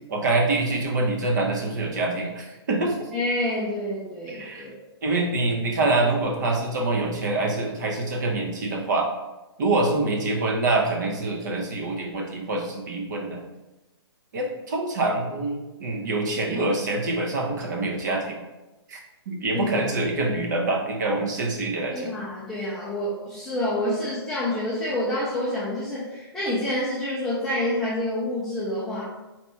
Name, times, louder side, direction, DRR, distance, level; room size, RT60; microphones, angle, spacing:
voice 1, 0.1-3.1 4.3-4.7 5.0-9.1 9.6-13.4 14.3-18.4 18.9-19.0 19.3-22.1, right 2 dB, 45° right, 1 dB, 0.8 m, -25 dB
voice 2, 3.1-4.8 19.5-19.7 20.3-20.4 21.9-29.0, left 1 dB, ahead, -10 dB, 0.3 m, -28 dB
4.2 x 2.9 x 3.4 m, 1.0 s
hypercardioid pair, 160°, 14 cm